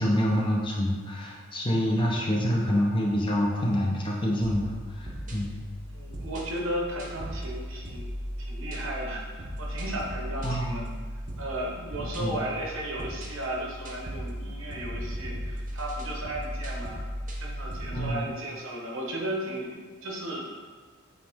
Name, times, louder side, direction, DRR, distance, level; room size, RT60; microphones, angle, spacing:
voice 1, 0.0-5.5 10.4-10.9 12.2-12.5 17.9-18.3, equal, 25° left, -2 dB, 0.8 m, -27 dB
sound 1, 4.4-18.1, equal, 40° right, 0.8 m, -37 dB
voice 2, 5.9-10.9 11.4-17.0 17.4-20.5, right 1 dB, 70° right, -1 dB, 1.1 m, -35 dB
8.2 x 3.3 x 3.6 m, 1.5 s
head